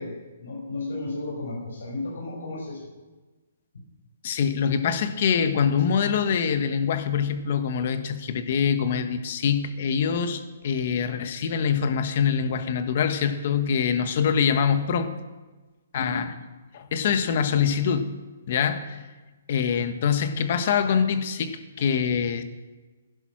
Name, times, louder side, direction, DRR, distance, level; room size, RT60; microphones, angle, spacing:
voice 1, 0.0-2.8 15.9-16.2, left 2 dB, 75° left, -4 dB, 5.9 m, -33 dB
voice 2, 4.2-15.1 15.9-16.3 16.7-18.1 18.5-19.0 19.5-22.4, left 7 dB, 35° left, 10 dB, 1.2 m, -24 dB
16.0 x 11.0 x 6.1 m, 1.2 s
hypercardioid pair, 180°, 0 cm